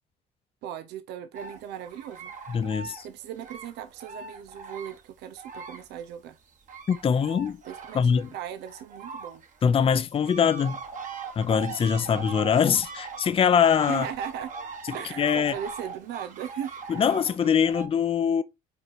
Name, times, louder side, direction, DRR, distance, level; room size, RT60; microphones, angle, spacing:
voice 1, 0.6-2.3 3.0-6.4 7.6-9.4 13.9-14.6 14.9-16.9, right 9 dB, 85° right, 0.7 m, -38 dB
sound 1, 1.3-6.1 6.4-17.9, right 5 dB, 50° right, 1.6 m, -41 dB
voice 2, 2.5-3.1 6.9-7.6 7.9-8.3 9.6-10.8 11.4-14.1 14.9-15.5 16.9-18.4, left 7 dB, 35° left, 0.6 m, -23 dB
5.2 x 4.7 x 4.3 m
cardioid pair, 110°, 17 cm